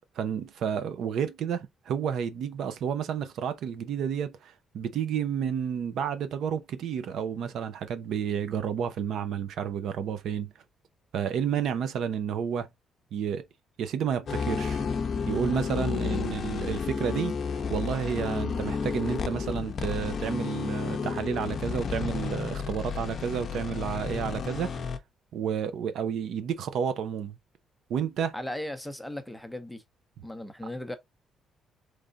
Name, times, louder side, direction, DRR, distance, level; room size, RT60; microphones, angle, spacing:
voice 1, 0.2-10.5 11.1-12.7 13.1-13.4 13.8-14.9 15.3-24.7 25.3-27.4 27.9-28.3, right 8 dB, 70° right, 0.7 m, -31 dB
sound 1, 14.3-25.0, left 5 dB, 45° left, 0.6 m, -31 dB
voice 2, 28.3-29.8 30.2-30.9, left 1 dB, 5° left, 0.7 m, -37 dB
3.6 x 3.3 x 3.9 m
cardioid pair, 125°, 0 cm